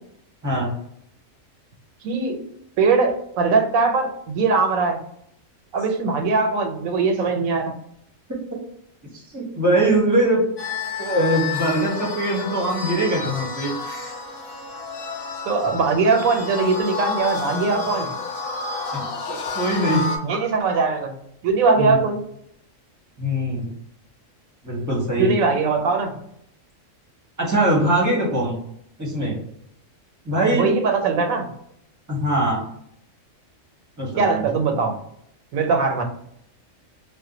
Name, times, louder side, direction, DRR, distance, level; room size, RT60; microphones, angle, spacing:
voice 1, 0.4-0.7 9.3-10.4 11.0-14.1 18.9-20.1 21.8-22.0 23.2-23.7 24.6-25.3 27.4-28.6 29.0-29.4 30.2-30.7 32.1-32.6 34.0-34.4, right 1 dB, 20° right, -3 dB, 0.6 m, -22 dB
voice 2, 2.0-2.4 2.8-5.0 5.7-7.7 15.5-18.1 20.2-21.1 21.4-22.2 25.2-26.1 30.5-31.5 34.2-35.0 35.5-36.0, right 4 dB, 90° right, 4 dB, 1.0 m, -21 dB
sound 1, 10.6-20.2, left 4 dB, 90° left, 1.1 m, -30 dB
2.5 x 2.1 x 3.7 m, 0.71 s
omnidirectional pair, 1.4 m